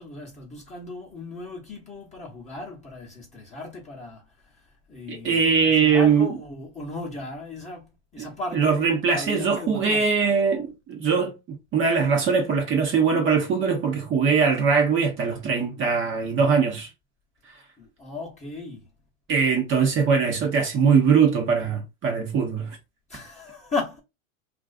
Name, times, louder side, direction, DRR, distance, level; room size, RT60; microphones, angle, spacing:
voice 1, 0.0-10.1 17.8-18.9 23.1-24.0, left 2 dB, 15° left, 0.8 m, -36 dB
voice 2, 5.1-6.3 8.5-16.9 19.3-22.8, right 5 dB, 30° right, 0.7 m, -21 dB
2.4 x 2.4 x 2.3 m
hypercardioid pair, 100°, 41 cm